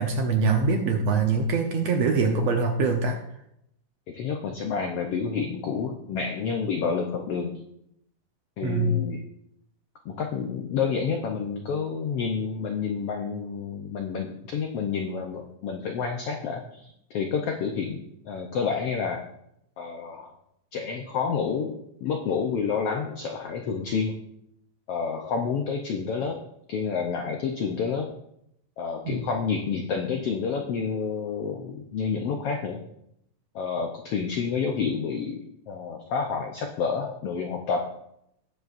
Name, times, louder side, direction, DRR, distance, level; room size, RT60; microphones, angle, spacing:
voice 1, 0.0-3.2 8.6-9.0 29.0-29.2, right 4 dB, 70° right, 3 dB, 1.7 m, -23 dB
voice 2, 4.1-7.6 8.6-9.3 10.0-19.2 19.8-20.3 20.7-24.2 24.9-26.4 26.7-28.1 28.8-32.8 33.5-35.4 35.7-37.9, left 6 dB, 85° left, 3 dB, 1.3 m, -29 dB
18.0 x 7.3 x 2.6 m, 0.76 s
omnidirectional pair, 3.8 m